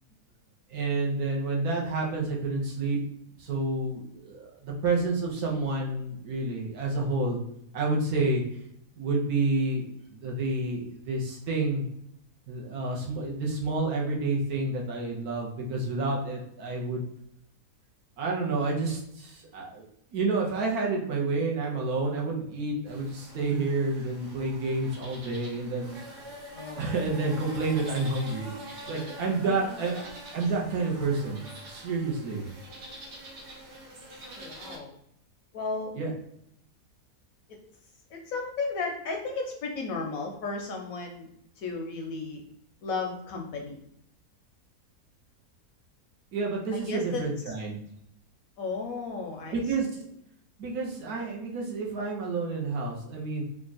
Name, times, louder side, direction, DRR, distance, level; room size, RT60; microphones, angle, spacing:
voice 1, 0.7-3.0 3.4-7.4 7.7-8.4 9.0-11.9 12.5-17.0 18.2-26.0 26.8-32.4 35.9-36.1 46.3-47.8 49.5-49.9 50.6-53.4, right 3 dB, 65° right, -1 dB, 1.3 m, -29 dB
sound 1, 22.9-34.8, right 1 dB, 85° right, 1.5 m, -45 dB
voice 2, 26.5-27.0 29.4-29.8 34.3-34.9 35.5-35.9 38.1-41.3 41.6-42.4 42.8-43.8 46.7-47.2 48.6-49.6, left 3 dB, 70° left, 2 dB, 0.9 m, -34 dB
3.6 x 2.4 x 3.9 m, 0.73 s
omnidirectional pair, 1.8 m